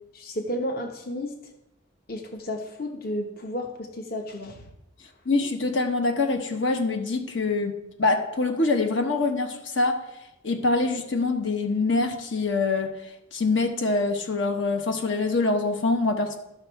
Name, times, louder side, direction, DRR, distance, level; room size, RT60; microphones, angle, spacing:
voice 1, 0.1-1.3 2.1-4.7, left 1 dB, 50° left, 3 dB, 0.9 m, -32 dB
voice 2, 5.3-10.0 10.4-12.9 13.3-16.4, left 3 dB, 80° left, 6 dB, 1.1 m, -24 dB
12.5 x 6.0 x 4.5 m, 0.90 s
head